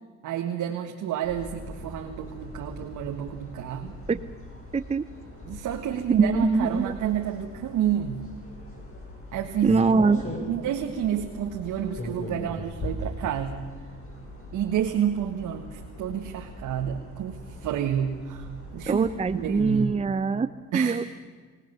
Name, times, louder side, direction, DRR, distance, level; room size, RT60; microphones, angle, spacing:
voice 1, 0.2-4.0 5.4-8.2 9.3-9.8 10.5-13.7 14.5-19.1 19.3-19.9 20.7-21.0, right 9 dB, 80° right, 4 dB, 1.6 m, -29 dB
sound 1, 1.2-19.8, left 1 dB, 45° left, 7.1 m, -40 dB
voice 2, 4.7-5.1 6.2-6.9 9.6-10.2 18.9-21.0, right 4 dB, 20° right, 12 dB, 0.7 m, -23 dB
25.5 x 18.5 x 6.8 m, 1.5 s
cardioid pair, 90°, 30 cm